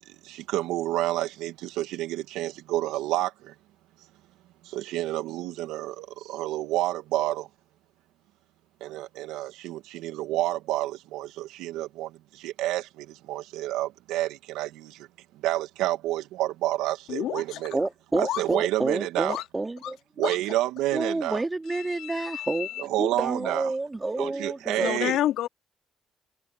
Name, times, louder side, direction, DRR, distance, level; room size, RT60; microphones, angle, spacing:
voice 1, 0.1-3.5 4.6-7.5 8.8-15.1 15.4-17.8 18.2-19.4 20.2-21.4 22.8-23.7 24.2-25.2, right 15 dB, 85° right, 2.4 m, -29 dB
voice 2, 17.1-17.6 18.1-18.4 19.3-19.5 19.8-19.9 20.2-20.4 21.7-22.8 24.7-25.5, left 13 dB, 80° left, 3.6 m, -30 dB
voice 3, 17.7-20.0 20.9-24.9, right 2 dB, 25° right, 3.3 m, -29 dB
supercardioid pair, 50°, 0 cm